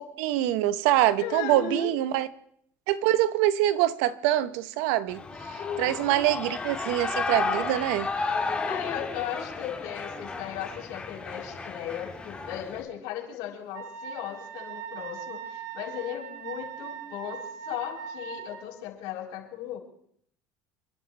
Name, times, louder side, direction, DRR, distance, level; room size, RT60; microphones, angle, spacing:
voice 1, 0.2-2.3 2.9-5.2 5.8-8.1, right 13 dB, 80° right, 1.0 m, -24 dB
voice 2, 1.2-1.9 5.6-6.2 8.6-19.8, left 9 dB, 70° left, 5.9 m, -36 dB
Shout / Cheering, 5.1-12.8, left 4 dB, 15° left, 2.2 m, -33 dB
Wind instrument woodwind instrument, 13.7-18.6, right 8 dB, 60° right, 2.3 m, -40 dB
30.0 x 12.0 x 3.4 m
cardioid pair, 155°, 8 cm